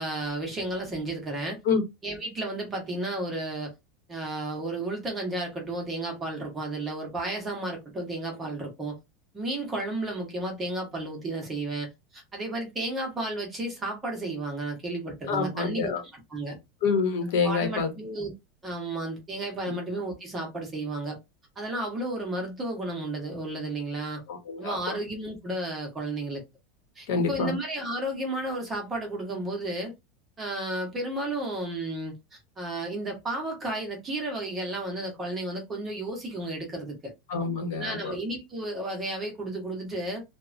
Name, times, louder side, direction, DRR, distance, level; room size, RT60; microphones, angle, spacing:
voice 1, 0.0-1.6 2.0-3.7 4.1-8.9 9.3-15.9 16.3-16.6 17.4-18.3 18.6-21.2 21.6-24.2 24.6-26.4 27.0-29.9 30.4-36.9 37.7-40.2, right 2 dB, 15° right, 0.8 m, -33 dB
voice 2, 15.3-16.0 16.8-17.9 19.7-19.8 24.3-25.0 27.1-27.6 37.3-38.2, left 5 dB, 60° left, 0.9 m, -27 dB
2.9 x 2.1 x 2.4 m
supercardioid pair, 175°, 0 cm